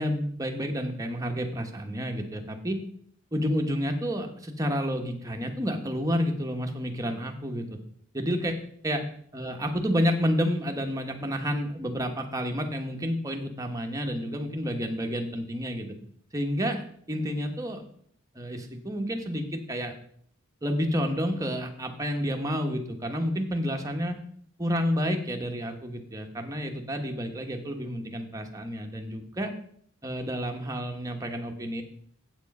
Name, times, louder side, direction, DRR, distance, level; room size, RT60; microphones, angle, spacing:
voice 1, 0.0-2.8 3.3-7.7 8.1-8.6 8.8-9.0 9.3-15.9 16.3-17.8 18.3-20.0 20.6-24.2 24.6-29.5 30.0-31.8, equal, 15° right, 3 dB, 1.2 m, -30 dB
8.1 x 7.2 x 5.4 m, 0.62 s
head